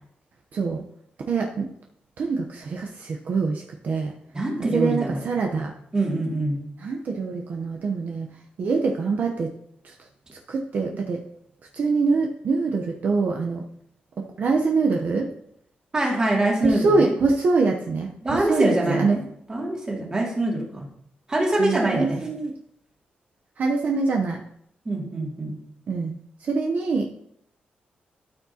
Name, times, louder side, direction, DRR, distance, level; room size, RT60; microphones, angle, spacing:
voice 1, 0.5-0.8 1.3-1.7 2.2-4.1 4.6-5.7 6.8-8.3 8.6-9.5 9.8-9.9 10.5-11.2 11.7-13.6 14.4-15.3 16.6-19.2 21.6-22.5 23.6-24.4 25.9-26.1 26.4-27.2, right 4 dB, 55° right, 1 dB, 0.8 m, -24 dB
voice 2, 4.3-5.6 5.9-6.6 15.9-17.1 18.2-19.2 19.5-20.9 21.3-22.3 24.8-25.6, right 1 dB, 25° right, -2 dB, 2.3 m, -24 dB
12.5 x 6.1 x 2.8 m, 0.72 s
wide cardioid pair, 135°, 3 cm